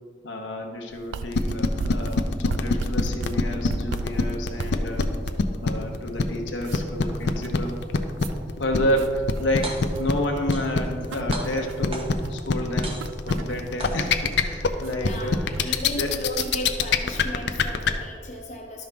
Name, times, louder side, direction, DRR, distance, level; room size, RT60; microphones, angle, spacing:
voice 1, 0.2-5.1 5.6-7.8 8.6-16.1, equal, 85° left, 1 dB, 1.0 m, -30 dB
sound 1, 0.9-16.9, right 4 dB, 90° right, 0.4 m, -38 dB
sound 2, 1.3-17.9, left 4 dB, 65° left, 0.5 m, -23 dB
sound 3, 9.5-10.1 10.5-11.0 11.3-12.3 12.8-13.4 13.8-14.4, right 2 dB, 30° right, 0.9 m, -37 dB
voice 2, 14.9-18.8, equal, 40° left, -1 dB, 0.9 m, -35 dB
12.0 x 5.4 x 3.5 m, 2.2 s
head